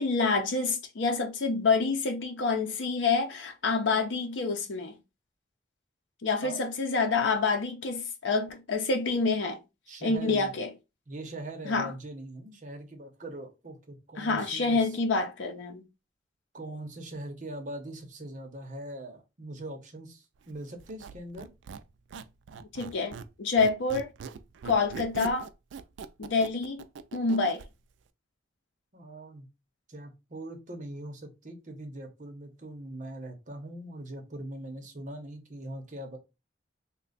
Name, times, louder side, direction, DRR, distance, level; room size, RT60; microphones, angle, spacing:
voice 1, 0.0-5.0 6.2-9.6 10.0-10.7 11.6-11.9 14.2-15.8 22.6-24.1 24.6-25.5 26.2-26.8 27.1-27.6, left 4 dB, 90° left, 0.6 m, -27 dB
voice 2, 9.9-10.5 11.1-15.0 16.5-21.5 28.9-29.5 29.9-36.2, right 1 dB, 40° right, 0.8 m, -41 dB
Squeak, 20.8-23.3 23.6-27.7, right 5 dB, 80° right, 0.3 m, -42 dB
3.2 x 2.2 x 3.9 m
head